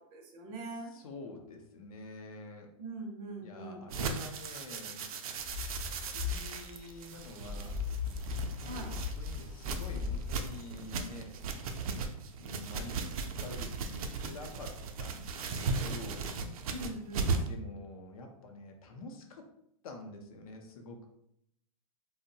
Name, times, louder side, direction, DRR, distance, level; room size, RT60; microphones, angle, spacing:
voice 1, 0.1-0.9 2.8-3.8 8.6-8.9 16.7-17.3, right 2 dB, 30° right, 1 dB, 0.4 m, -42 dB
voice 2, 0.7-2.7 3.4-5.1 5.9-7.8 8.6-11.4 12.4-16.3 17.4-19.5 19.8-21.0, left 2 dB, 90° left, 4 dB, 0.6 m, -48 dB
sound 1, 3.9-17.6, right 4 dB, 90° right, 0.4 m, -37 dB
sound 2, 5.4-10.5, left 6 dB, 25° left, 0.5 m, -38 dB
2.7 x 2.0 x 2.6 m, 0.76 s
supercardioid pair, 170°, 18 cm